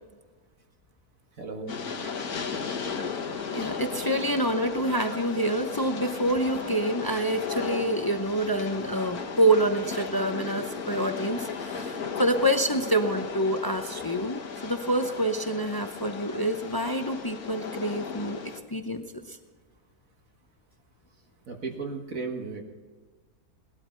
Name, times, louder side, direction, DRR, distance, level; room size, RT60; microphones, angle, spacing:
voice 1, 1.4-1.8 21.5-22.6, right 4 dB, 60° right, 2 dB, 1.8 m, -35 dB
Train, 1.7-18.6, left 5 dB, 70° left, 1.7 m, -35 dB
voice 2, 3.5-18.4 18.7-19.4, right 1 dB, 25° left, 6 dB, 0.5 m, -27 dB
18.5 x 12.5 x 4.5 m, 1.4 s
omnidirectional pair, 1.7 m